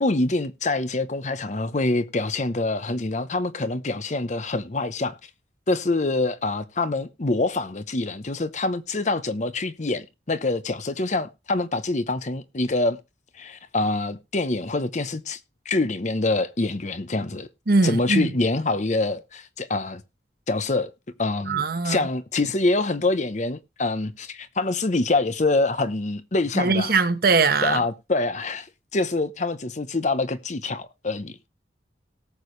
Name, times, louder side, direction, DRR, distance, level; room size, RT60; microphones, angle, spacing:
voice 1, 0.0-5.1 5.7-13.0 13.4-15.4 15.7-17.5 17.8-20.0 20.5-20.9 21.2-27.0 27.6-28.7 28.9-31.4, left 2 dB, 40° left, 0.8 m, -25 dB
voice 2, 17.7-18.3 21.5-22.1 26.5-27.8, right 4 dB, 55° right, 1.1 m, -21 dB
18.0 x 6.8 x 3.2 m
head